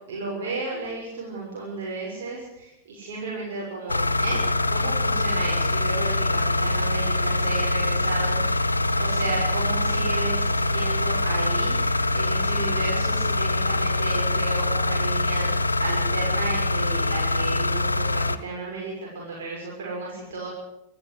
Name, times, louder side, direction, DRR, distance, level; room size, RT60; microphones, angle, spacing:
voice 1, 0.1-4.4 4.7-8.6 9.0-15.5 15.8-20.5, right 3 dB, 60° right, -3 dB, 6.8 m, -33 dB
sound 1, 3.9-18.4, left 2 dB, 80° left, 1.0 m, -24 dB
27.0 x 13.5 x 8.0 m, 0.84 s
figure-of-eight pair, 90°, 0 cm